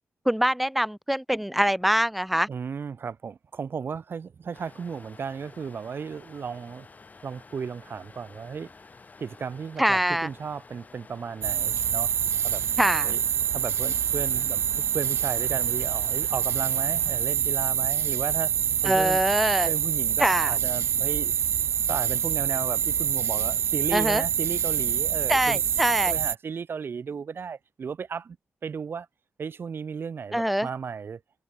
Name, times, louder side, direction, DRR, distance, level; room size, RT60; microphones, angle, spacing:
voice 1, 0.3-2.5 9.8-10.3 12.8-13.2 18.8-19.7 20.2-20.5 23.9-24.2 25.3-26.1 30.3-30.7, equal, ahead, 0.5 m, -24 dB
voice 2, 2.5-6.9 7.2-8.7 9.2-12.1 12.4-12.6 13.0-13.2 13.5-18.5 18.8-19.2 19.6-21.4 21.9-25.6 26.0-28.4 28.6-29.1 29.4-31.2, right 6 dB, 55° right, 1.7 m, -35 dB
sound 1, 4.5-17.2, left 4 dB, 35° left, 6.6 m, -51 dB
sound 2, 11.4-26.4, right 9 dB, 85° right, 0.5 m, -26 dB
cardioid pair, 85°, 4 cm